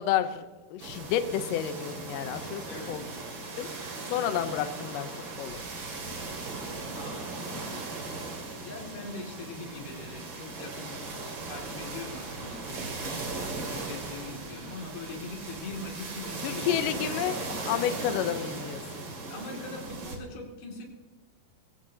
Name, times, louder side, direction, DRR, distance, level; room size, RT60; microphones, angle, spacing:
voice 1, 0.0-3.1 3.6-3.7 4.1-5.1 5.4-5.6 16.4-17.4 17.6-19.0, left 10 dB, 85° left, 9 dB, 1.9 m, -30 dB
sound 1, 0.8-20.2, right 3 dB, 40° right, 2.2 m, -38 dB
voice 2, 2.6-3.0 6.9-7.9 8.6-10.9 11.5-17.1 19.2-20.8, left 2 dB, 65° left, 1 dB, 4.4 m, -42 dB
22.5 x 16.0 x 2.9 m, 1.2 s
omnidirectional pair, 4.9 m